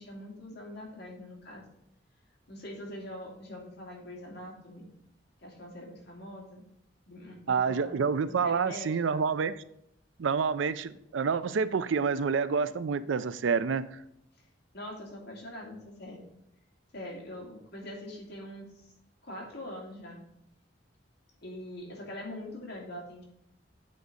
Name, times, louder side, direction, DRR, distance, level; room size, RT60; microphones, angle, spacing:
voice 1, 0.0-1.7 2.5-4.9 5.4-6.6 7.1-9.2 14.7-16.3 16.9-18.9 19.2-20.2 21.4-23.2, left 1 dB, 60° left, 2.4 m, -43 dB
voice 2, 7.5-9.6 10.2-13.8, right 5 dB, 85° right, 0.4 m, -28 dB
8.4 x 4.1 x 5.2 m
head